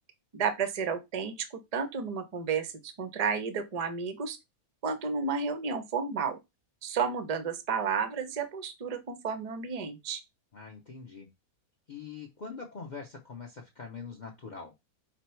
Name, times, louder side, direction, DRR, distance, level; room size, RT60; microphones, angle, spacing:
voice 1, 0.3-1.5 1.7-4.4 4.8-6.4 6.8-10.2, right 5 dB, 50° right, 0.4 m, -32 dB
voice 2, 10.5-11.3 11.9-14.8, left 5 dB, 60° left, 0.5 m, -43 dB
5.1 x 2.0 x 4.3 m
omnidirectional pair, 1.5 m